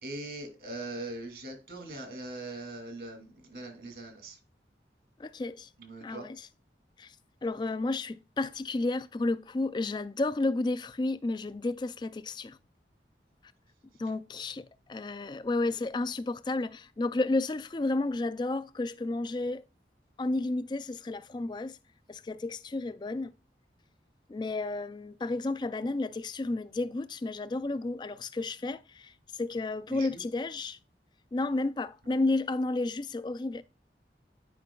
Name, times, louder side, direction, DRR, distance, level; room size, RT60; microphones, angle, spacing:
voice 1, 0.0-4.4 5.8-6.3 29.9-30.2, right 2 dB, 65° right, 2.4 m, -41 dB
voice 2, 5.2-5.7 6.0-6.4 7.0-7.2 7.4-12.6 14.0-19.6 20.2-21.8 22.1-23.3 24.3-30.8 31.3-33.6, left 2 dB, 25° left, 0.3 m, -32 dB
11.0 x 5.2 x 2.3 m
head